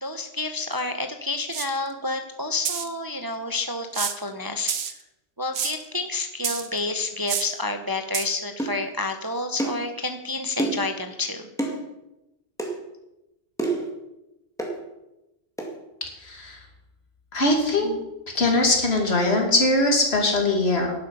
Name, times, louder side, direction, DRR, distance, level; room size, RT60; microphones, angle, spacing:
voice 1, 0.0-4.9 5.4-11.5, left 2 dB, 20° right, 5 dB, 0.8 m, -29 dB
sound 1, 0.8-0.9 1.5-1.8 2.6-2.9 3.9-4.3 4.7-4.9 5.5-5.8 6.4-6.8 7.3-7.5 8.1-8.2, right 7 dB, 75° right, 1.3 m, -28 dB
sound 2, 8.6-8.8 9.6-9.9 10.6-10.9 11.6-11.8 12.6-12.8 13.6-13.9 14.6-14.8 15.6-15.7, right 2 dB, 5° left, 2.1 m, -27 dB
voice 2, 16.0-16.6 17.3-18.0 18.3-20.9, left 2 dB, 60° left, 2 dB, 2.7 m, -21 dB
11.5 x 11.0 x 5.5 m, 0.93 s
omnidirectional pair, 1.2 m